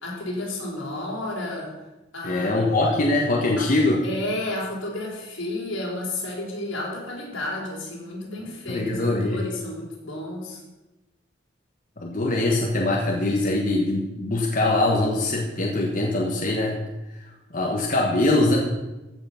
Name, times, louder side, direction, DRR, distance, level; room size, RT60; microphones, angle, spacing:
voice 1, 0.0-1.7 2.1-2.7 3.6-3.7 4.0-10.6, left 1 dB, 80° left, -3 dB, 4.1 m, -32 dB
voice 2, 2.2-4.0 8.5-9.4 12.0-16.8 17.5-18.6, left 2 dB, 45° left, -1 dB, 1.3 m, -22 dB
15.0 x 5.9 x 5.7 m, 1.0 s
head